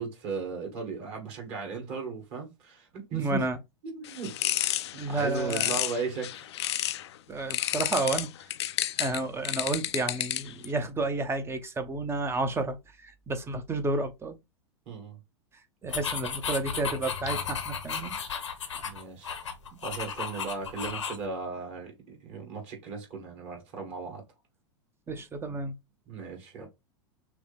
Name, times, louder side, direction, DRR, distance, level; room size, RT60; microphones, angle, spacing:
voice 1, 0.0-3.5 3.8-4.4 4.8-6.5 14.9-15.2 18.8-19.4 19.8-24.2 26.1-26.7, right 5 dB, 45° right, 2.4 m, -36 dB
voice 2, 3.1-3.6 5.0-5.8 7.3-8.3 9.0-14.4 15.8-18.1 25.1-25.7, right 2 dB, 15° right, 0.8 m, -31 dB
sound 1, 4.0-7.1 7.5-10.7, left 13 dB, 65° left, 0.5 m, -31 dB
sound 2, 15.9-21.3, left 6 dB, 80° left, 1.0 m, -34 dB
6.0 x 2.2 x 3.4 m
hypercardioid pair, 95°, 15 cm